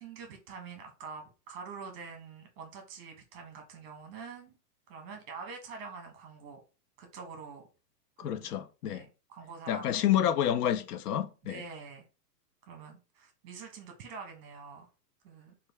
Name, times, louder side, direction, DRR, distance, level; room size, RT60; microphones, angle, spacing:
voice 1, 0.0-4.6 4.9-6.6 7.0-7.7 8.2-8.5 8.9-9.9 11.4-12.1 12.7-14.9 15.2-15.5, right 5 dB, 35° right, 0.9 m, -46 dB
voice 2, 8.2-9.1 9.7-11.6, left 10 dB, 70° left, 0.6 m, -29 dB
3.0 x 2.4 x 3.4 m
hypercardioid pair, 155°, 49 cm